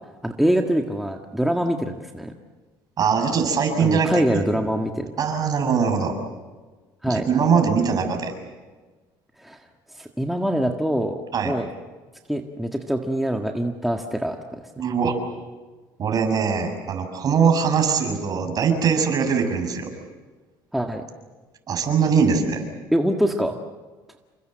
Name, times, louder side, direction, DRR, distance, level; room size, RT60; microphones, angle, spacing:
voice 1, 0.2-2.3 3.8-5.1 7.0-7.3 9.4-9.6 9.9-11.7 12.3-14.6 20.7-21.0 22.9-23.6, equal, ahead, 3 dB, 1.8 m, -24 dB
voice 2, 3.0-4.4 5.2-6.1 7.1-8.3 11.3-11.5 14.8-15.1 16.0-19.9 21.7-22.6, right 6 dB, 45° right, 5 dB, 6.7 m, -21 dB
28.5 x 24.5 x 7.8 m, 1.3 s
cardioid pair, 105°, 9 cm